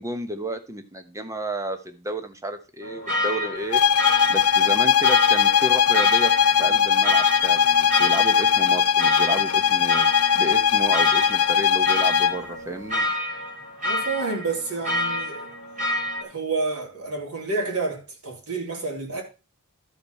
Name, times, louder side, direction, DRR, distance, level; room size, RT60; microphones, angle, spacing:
voice 1, 0.0-3.8 4.3-6.3 6.6-10.1 10.3-13.1, right 1 dB, 15° right, 1.2 m, -31 dB
sound 1, 2.8-16.2, left 1 dB, 35° right, 3.4 m, -29 dB
sound 2, 3.7-12.4, left 8 dB, 85° left, 0.6 m, -19 dB
voice 2, 13.8-15.5 16.2-19.2, right 3 dB, 85° right, 3.4 m, -29 dB
12.5 x 5.2 x 5.6 m
head